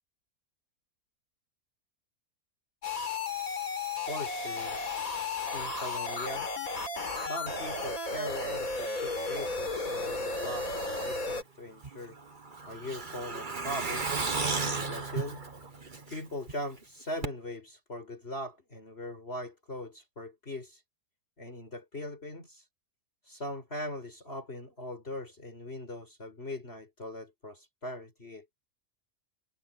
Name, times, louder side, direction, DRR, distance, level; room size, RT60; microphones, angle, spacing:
sound 1, 2.8-11.4, left 3 dB, 60° left, 4.7 m, -34 dB
voice 1, 4.1-4.8 5.5-6.5 6.8-10.7 11.0-12.2 12.7-14.1 14.6-15.4 16.1-20.8 21.4-22.7 23.2-28.5, left 1 dB, 40° left, 6.1 m, -40 dB
Truck, 11.8-16.5 16.8-16.9 17.2-17.3, right 4 dB, 30° right, 1.7 m, -34 dB
omnidirectional pair, 1.6 m